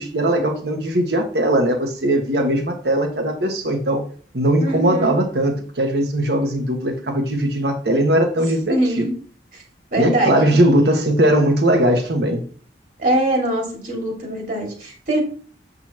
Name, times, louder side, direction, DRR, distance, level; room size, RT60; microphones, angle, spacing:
voice 1, 0.0-4.0 4.3-9.0 10.0-12.4, right 1 dB, 65° right, 3 dB, 1.5 m, -19 dB
voice 2, 4.6-5.2 8.7-9.1 9.9-10.5 13.0-15.2, right 1 dB, 50° right, 0 dB, 2.2 m, -22 dB
7.8 x 5.5 x 2.9 m, 0.42 s
head